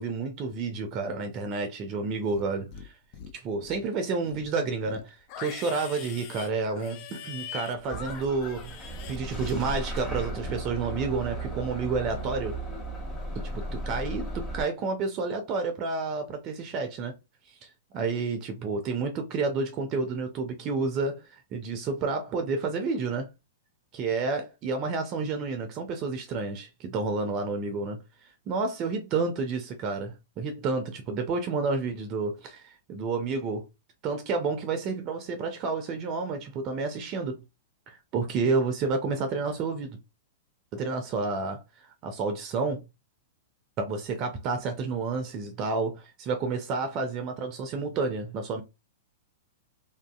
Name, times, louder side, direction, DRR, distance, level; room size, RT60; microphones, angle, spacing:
voice 1, 0.0-2.9 3.3-12.6 13.3-17.1 17.5-23.3 23.9-28.0 28.5-33.6 34.0-37.4 37.9-40.0 40.7-41.6 42.0-42.8 43.8-48.6, right 4 dB, 40° right, 0.5 m, -30 dB
Livestock farm animals working animals, 2.2-2.9 3.1-3.9 4.2-9.8 10.1-10.6, left 8 dB, 45° left, 0.5 m, -43 dB
Bus / Engine starting, 7.9-14.6, right 2 dB, 10° left, 1.3 m, -35 dB
2.6 x 2.5 x 2.3 m
hypercardioid pair, 110°, 0 cm